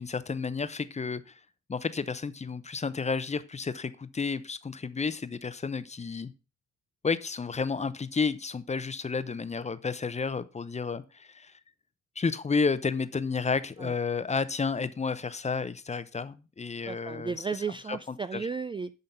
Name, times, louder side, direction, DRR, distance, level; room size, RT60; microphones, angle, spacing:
voice 1, 0.0-1.3 1.7-6.3 7.0-11.5 12.2-17.3 17.9-18.0 18.3-18.5, left 5 dB, 20° left, 0.7 m, -31 dB
voice 2, 16.8-18.9, right 5 dB, 15° right, 0.3 m, -34 dB
10.5 x 3.9 x 5.7 m
cardioid pair, 90°, 30 cm